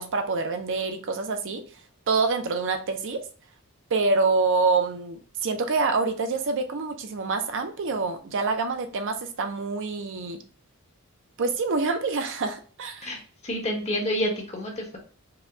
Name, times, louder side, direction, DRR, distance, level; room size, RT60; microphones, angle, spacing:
voice 1, 0.0-1.6 2.1-3.2 3.9-10.4 11.4-13.1, right 4 dB, 60° right, 7 dB, 0.6 m, -26 dB
voice 2, 13.0-15.0, equal, 30° left, 0 dB, 1.3 m, -29 dB
4.9 x 2.3 x 3.7 m, 0.40 s
head